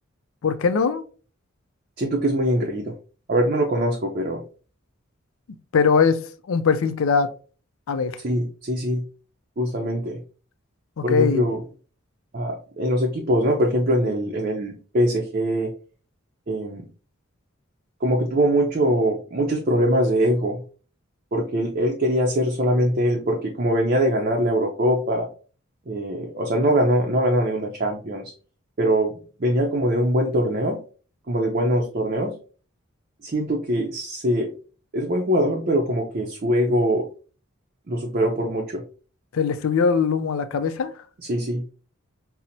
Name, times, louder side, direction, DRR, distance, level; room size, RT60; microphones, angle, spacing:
voice 1, 0.4-1.0 5.7-6.2 6.5-7.3 7.9-8.1 11.0-11.4 39.3-40.9, left 5 dB, 80° left, 0.4 m, -21 dB
voice 2, 2.0-2.9 3.3-4.4 8.2-9.0 9.6-10.2 11.0-11.6 12.3-15.7 16.5-16.8 18.0-20.6 21.3-25.3 25.9-28.3 28.8-29.1 29.4-30.8 31.3-32.3 33.2-34.5 34.9-37.1 37.9-38.8 41.2-41.6, equal, 40° right, 0.5 m, -22 dB
5.6 x 2.0 x 2.6 m
head